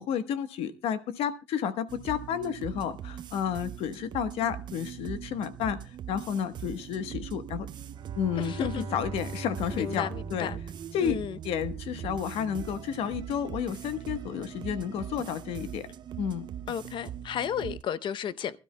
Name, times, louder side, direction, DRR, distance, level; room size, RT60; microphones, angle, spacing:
voice 1, 0.0-7.7 8.1-10.5 10.9-11.2 11.4-15.9 16.2-16.5, left 8 dB, 75° left, 1.2 m, -31 dB
sound 1, 1.9-17.8, right 10 dB, 50° right, 0.6 m, -41 dB
Bowed string instrument, 7.8-11.6, right 3 dB, 65° right, 2.2 m, -41 dB
voice 2, 8.4-8.9 9.7-10.6 11.0-11.4 16.7-18.6, left 9 dB, 55° left, 0.7 m, -33 dB
24.5 x 12.5 x 2.2 m
cardioid pair, 115°, 10 cm